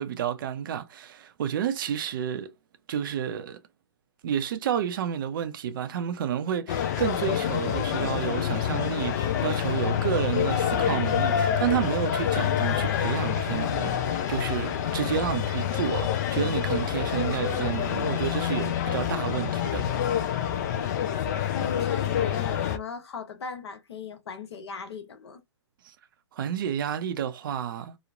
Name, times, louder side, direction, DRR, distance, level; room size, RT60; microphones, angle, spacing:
voice 1, 0.0-2.5 2.9-3.6 4.2-20.2 25.8-25.9 26.3-28.0, right 9 dB, 45° right, 0.5 m, -30 dB
sound 1, 6.7-22.8, left 9 dB, 35° left, 0.5 m, -27 dB
voice 2, 21.5-25.4, left 6 dB, 60° left, 0.8 m, -38 dB
3.0 x 2.0 x 2.3 m
hypercardioid pair, 135°, 15 cm